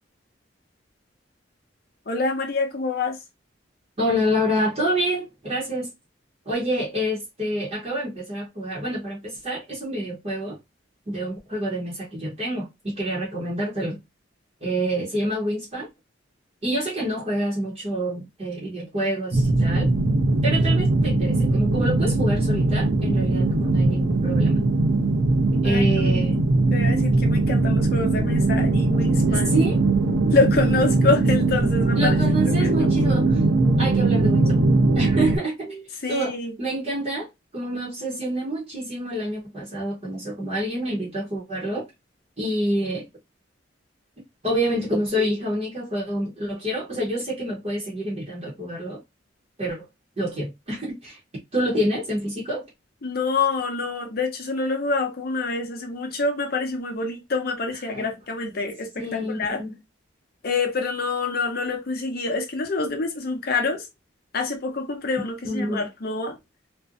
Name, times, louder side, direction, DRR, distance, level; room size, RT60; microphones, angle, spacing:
voice 1, 2.1-3.2 25.6-26.2 26.7-29.5 30.3-32.1 32.5-33.0 36.0-36.5 53.0-59.6 60.4-63.9 64.3-66.4, left 3 dB, 50° left, 0.6 m, -26 dB
voice 2, 4.0-5.9 6.4-10.6 11.1-14.0 14.6-15.9 16.6-19.9 20.4-24.7 25.6-26.4 29.3-29.8 31.9-33.5 33.8-34.7 34.9-37.3 37.5-41.9 42.4-43.0 44.4-49.0 49.6-49.9 50.2-51.2 51.5-52.7 57.9-58.0 59.0-59.7 65.4-65.8, right 1 dB, 30° right, 0.8 m, -27 dB
sound 1, 19.3-35.4, right 2 dB, 80° right, 0.6 m, -20 dB
2.5 x 2.1 x 2.4 m
head